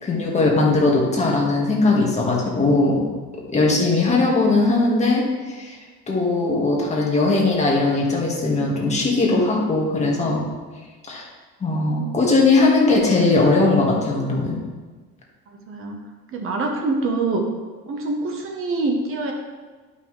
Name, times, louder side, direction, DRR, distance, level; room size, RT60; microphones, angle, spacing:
voice 1, 0.0-3.0 3.5-5.8 6.1-10.4 11.1-11.3 11.6-14.6, left 3 dB, 20° left, -2 dB, 1.6 m, -19 dB
voice 2, 15.7-16.0 16.3-17.5 17.9-19.3, right 3 dB, 45° right, 2 dB, 1.1 m, -25 dB
11.0 x 5.6 x 3.2 m, 1.4 s
cardioid pair, 145°, 31 cm